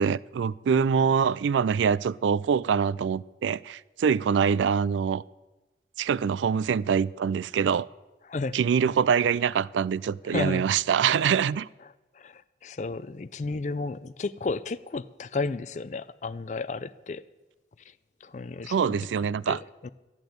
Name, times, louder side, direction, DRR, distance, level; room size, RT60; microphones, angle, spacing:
voice 1, 0.0-5.2 6.0-7.9 8.5-11.7 18.7-19.6, right 7 dB, 85° right, 0.3 m, -24 dB
voice 2, 10.3-10.6 12.2-17.2 18.2-19.0 19.5-19.9, left 3 dB, 40° left, 0.4 m, -33 dB
12.0 x 8.8 x 7.8 m
head